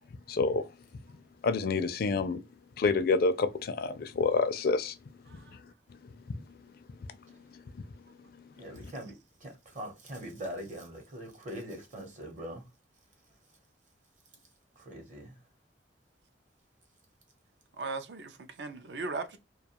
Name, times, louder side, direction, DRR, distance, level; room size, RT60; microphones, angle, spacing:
voice 1, 0.3-0.6 1.4-2.4 2.8-5.0 5.3-5.4, left 4 dB, 55° left, 0.4 m, -27 dB
voice 2, 5.3-5.6 17.8-19.4, right 3 dB, 65° right, 0.4 m, -38 dB
voice 3, 8.6-9.2 9.4-12.6 14.8-15.3, equal, 45° right, 0.9 m, -42 dB
2.3 x 2.3 x 2.9 m
head